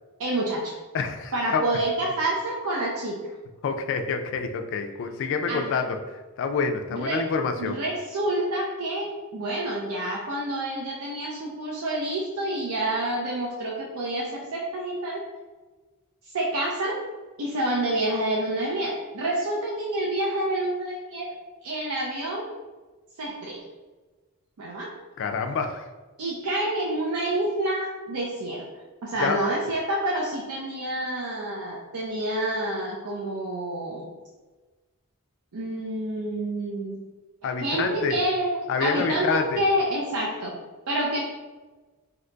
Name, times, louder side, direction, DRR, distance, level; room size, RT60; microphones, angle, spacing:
voice 1, 0.2-0.8 1.3-3.2 5.5-5.7 6.9-7.2 7.6-15.2 16.3-17.0 17.4-21.3 21.6-22.5 23.2-23.6 24.6-24.9 26.2-28.6 29.0-34.1 35.5-37.0 37.6-40.6 40.9-41.2, right 1 dB, 70° right, -3 dB, 0.5 m, -28 dB
voice 2, 0.9-1.6 3.6-6.0 6.4-7.8 25.2-25.9 29.2-29.4 37.4-38.2 38.7-39.6, left 5 dB, 60° left, 6 dB, 0.3 m, -27 dB
2.8 x 2.2 x 3.8 m, 1.3 s
head